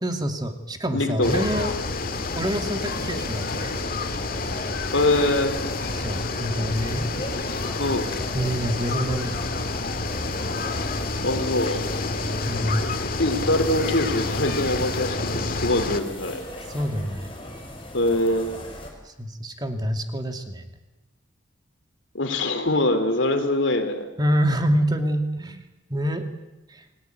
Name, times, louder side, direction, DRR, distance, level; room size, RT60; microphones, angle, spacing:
voice 1, 0.0-1.7 2.3-3.9 5.9-7.0 8.3-9.4 12.5-12.9 16.7-17.3 19.0-20.6 24.2-25.6 25.9-26.2 26.7-26.8, equal, 20° right, 6 dB, 2.5 m, -26 dB
voice 2, 0.9-1.4 4.9-5.6 7.8-8.1 11.2-11.9 13.0-16.4 17.9-18.5 22.1-24.1, left 1 dB, 75° left, 9 dB, 3.1 m, -23 dB
sound 1, 1.2-16.0, left 3 dB, 50° left, 1.9 m, -29 dB
sound 2, 1.3-18.9, left 1 dB, 25° left, 6.2 m, -39 dB
28.0 x 18.5 x 9.5 m, 1.0 s
head